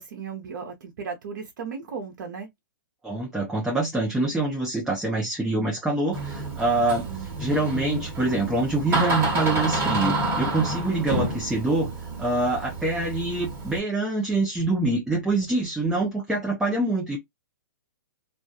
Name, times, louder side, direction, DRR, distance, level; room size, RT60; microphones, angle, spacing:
voice 1, 0.0-2.5 7.0-7.4, right 6 dB, 60° right, 0.6 m, -36 dB
voice 2, 3.0-11.9 12.2-17.2, right 2 dB, 5° right, 0.5 m, -25 dB
Door, 6.1-13.8, right 2 dB, 20° right, 1.1 m, -29 dB
2.3 x 2.2 x 2.6 m
hypercardioid pair, 135°, 11 cm